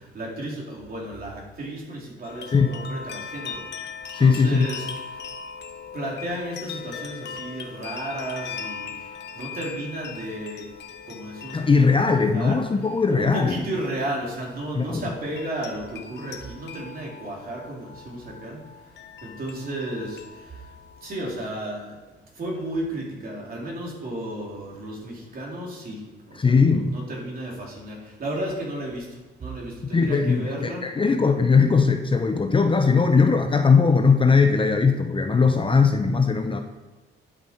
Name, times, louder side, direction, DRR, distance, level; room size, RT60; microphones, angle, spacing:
voice 1, 0.1-3.6 4.2-4.9 5.9-8.9 9.4-10.6 11.1-11.6 12.0-12.6 13.1-18.6 19.2-20.2 21.0-21.9 22.4-26.0 26.6-29.1 29.4-30.8, right 1 dB, 50° right, -3 dB, 3.6 m, -33 dB
sound 1, 2.2-21.5, left 6 dB, 65° left, 1.0 m, -40 dB
voice 2, 4.1-4.7 11.5-13.6 14.7-15.1 26.4-27.0 29.9-36.6, left 5 dB, 25° left, 6 dB, 0.7 m, -19 dB
11.0 x 6.8 x 4.5 m, 1.2 s
cardioid pair, 90°, 20 cm